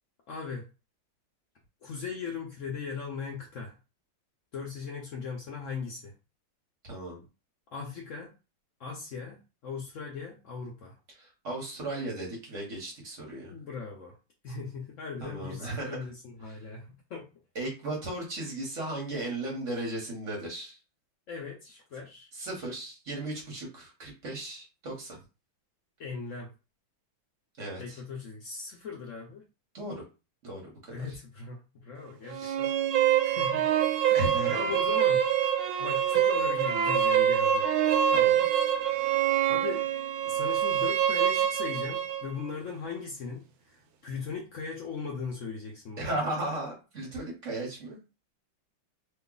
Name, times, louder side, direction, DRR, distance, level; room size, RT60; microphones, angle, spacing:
voice 1, 0.3-0.7 1.8-3.7 4.5-6.1 7.7-8.3 8.8-11.0 13.5-14.2 14.4-17.3 21.3-22.3 26.0-26.5 27.8-29.4 30.9-33.7 34.1-34.2 34.5-35.3 35.8-37.7 39.5-39.8 40.2-46.2, left 5 dB, 85° left, -1 dB, 0.6 m, -39 dB
voice 2, 6.8-7.2 11.1-13.5 15.2-16.0 16.5-16.6 17.5-20.8 22.3-25.2 27.6-28.0 29.7-30.0 30.4-31.1 32.4-32.6 34.1-34.7 38.1-38.4 46.0-48.0, right 1 dB, 45° right, -2 dB, 1.2 m, -36 dB
sound 1, 32.3-42.3, right 9 dB, 90° right, 1.4 m, -25 dB
3.1 x 2.3 x 3.7 m, 0.30 s
omnidirectional pair, 2.1 m